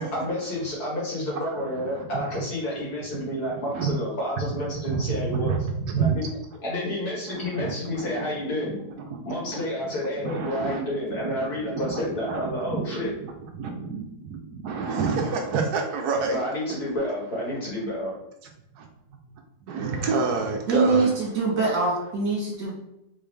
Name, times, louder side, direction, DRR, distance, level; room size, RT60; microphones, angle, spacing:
voice 1, 0.1-5.6 6.0-6.3 6.6-8.8 9.2-13.1 16.3-18.1, left 1 dB, 65° left, -5 dB, 2.3 m, -30 dB
voice 2, 4.8-6.2 7.3-8.3 8.6-8.7 9.1-9.6 10.2-10.8 11.2-12.0 12.3-12.4 12.7-13.1 13.5-16.4 18.7-18.9 19.7-21.1, right 5 dB, 75° right, 2 dB, 1.1 m, -28 dB
voice 3, 20.7-22.7, right 3 dB, 55° right, -4 dB, 2.0 m, -23 dB
4.1 x 3.8 x 3.3 m, 0.84 s
omnidirectional pair, 1.8 m